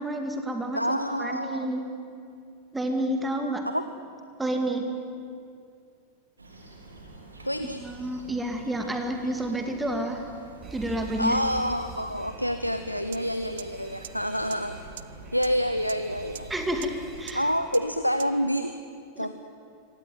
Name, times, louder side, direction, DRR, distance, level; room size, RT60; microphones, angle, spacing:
voice 1, 0.0-1.9 2.7-3.7 4.4-4.8 7.8-10.3 10.7-11.4 16.5-17.5 19.2-19.3, right 1 dB, 10° right, 5 dB, 2.4 m, -30 dB
voice 2, 0.7-1.7 3.7-3.8 7.4-7.8 11.2-14.7 15.3-16.5 17.3-18.8 19.2-19.3, equal, 90° left, 9 dB, 0.8 m, -27 dB
sound 1, 6.4-17.4, right 2 dB, 80° right, 3.8 m, -46 dB
Alarm, 10.6-18.3, right 5 dB, 25° right, 2.7 m, -47 dB
sound 2, 13.1-13.2 13.6-13.7 14.0-14.1 14.5-14.6 15.0-15.1 15.4-15.5 15.9-16.0 16.4-16.5 16.8-16.9 17.3-17.4 17.7-17.8 18.2-18.3, right 10 dB, 60° right, 0.6 m, -39 dB
25.0 x 18.0 x 9.3 m, 2.4 s
figure-of-eight pair, 90°, 0 cm